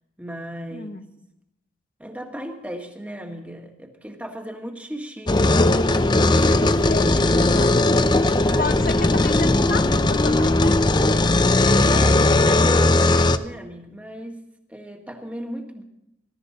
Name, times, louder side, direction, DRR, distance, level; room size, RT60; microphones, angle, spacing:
voice 1, 0.2-1.0 2.0-5.4 6.1-6.8 7.2-7.3 8.4-8.8 11.6-14.4 14.7-15.8, equal, 5° right, 3 dB, 1.6 m, -35 dB
voice 2, 0.7-1.0 6.1-7.7 8.6-10.8, left 3 dB, 45° left, 9 dB, 1.0 m, -31 dB
sound 1, 5.3-13.4, left 2 dB, 20° left, 0.5 m, -18 dB
21.0 x 12.5 x 4.1 m, 0.83 s
head